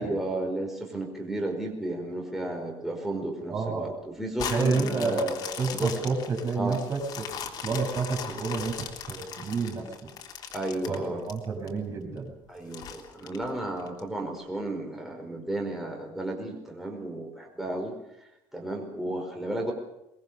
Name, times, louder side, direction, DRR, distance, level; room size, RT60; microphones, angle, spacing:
voice 1, 0.0-5.3 5.7-6.1 6.5-6.8 10.5-11.2 12.5-18.0 18.5-19.7, right 1 dB, 5° right, 0 dB, 4.9 m, -33 dB
voice 2, 3.5-4.0 4.5-7.3 7.6-10.1 10.9-12.3, right 4 dB, 35° right, 1 dB, 7.3 m, -30 dB
sound 1, 4.4-11.7 12.2-12.3 12.7-14.0 14.5-14.6, left 7 dB, 50° left, 3.6 m, -38 dB
23.0 x 22.0 x 6.7 m, 0.89 s
cardioid pair, 140°, 9 cm